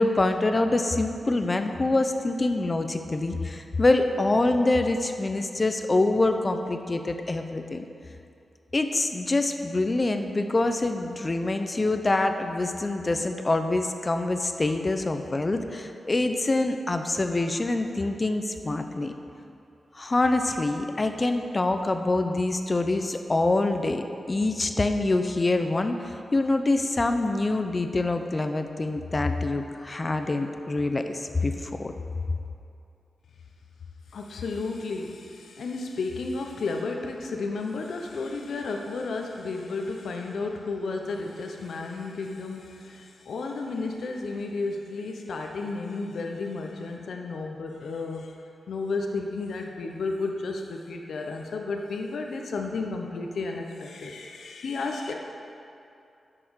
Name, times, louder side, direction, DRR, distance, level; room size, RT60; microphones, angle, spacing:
voice 1, 0.0-7.8 8.7-19.1 19.9-31.9, left 2 dB, 35° left, 7 dB, 0.8 m, -25 dB
voice 2, 34.1-48.3 48.7-55.1, left 3 dB, 80° left, 2 dB, 1.0 m, -32 dB
10.5 x 6.0 x 6.5 m, 2.6 s
cardioid pair, 60°, 0 cm